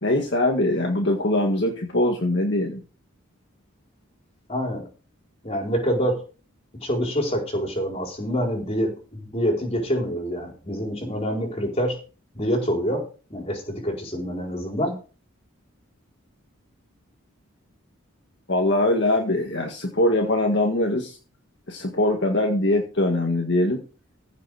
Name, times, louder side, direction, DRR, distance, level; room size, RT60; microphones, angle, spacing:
voice 1, 0.0-2.8 18.5-21.2 21.7-23.8, left 1 dB, 55° left, 2 dB, 1.8 m, -22 dB
voice 2, 4.5-4.9 5.4-6.3 6.8-12.0 12.3-13.0 13.3-15.0, equal, 30° left, 1 dB, 4.4 m, -26 dB
15.5 x 7.2 x 5.0 m, 0.36 s
head